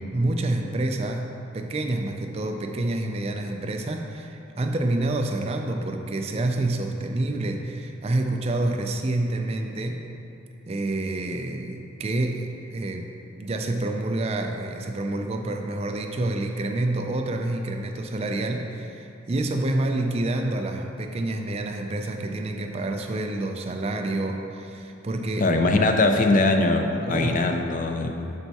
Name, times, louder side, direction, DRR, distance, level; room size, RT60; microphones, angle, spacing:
voice 1, 0.1-10.1 10.7-25.5 26.3-26.4 27.0-27.4 28.0-28.2, right 2 dB, 30° right, 4 dB, 0.3 m, -28 dB
voice 2, 25.4-28.3, left 2 dB, 40° left, 5 dB, 0.4 m, -21 dB
7.1 x 4.5 x 4.1 m, 2.7 s
head